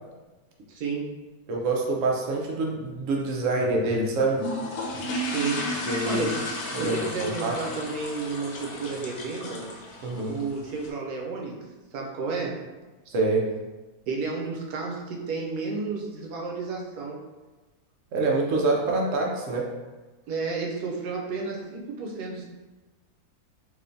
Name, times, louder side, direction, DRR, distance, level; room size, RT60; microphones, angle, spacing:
voice 1, 0.7-1.1 5.3-6.3 6.8-9.6 10.3-11.6 11.9-12.6 14.1-17.2 20.3-22.5, right 4 dB, 90° right, -1 dB, 1.2 m, -31 dB
voice 2, 1.5-4.4 5.9-6.3 6.7-7.5 10.0-10.4 13.1-13.4 18.1-19.7, right 2 dB, 65° right, -1 dB, 0.9 m, -26 dB
sound 1, 4.3-10.9, left 1 dB, 80° left, 1.1 m, -34 dB
3.4 x 3.0 x 2.6 m, 1.2 s
omnidirectional pair, 1.6 m